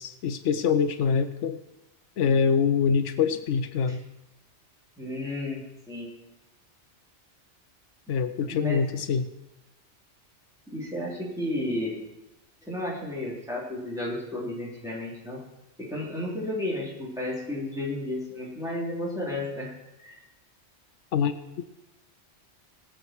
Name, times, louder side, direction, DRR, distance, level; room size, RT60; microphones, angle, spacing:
voice 1, 0.0-1.6 2.2-4.0 8.1-9.3 21.1-21.6, left 6 dB, 80° left, 11 dB, 1.0 m, -25 dB
voice 2, 5.0-6.1 8.5-8.9 10.7-12.0 12.6-15.4 15.8-19.7 20.0-20.2, left 1 dB, 5° right, -6 dB, 3.7 m, -32 dB
19.0 x 7.8 x 4.6 m, 0.95 s
omnidirectional pair, 1.2 m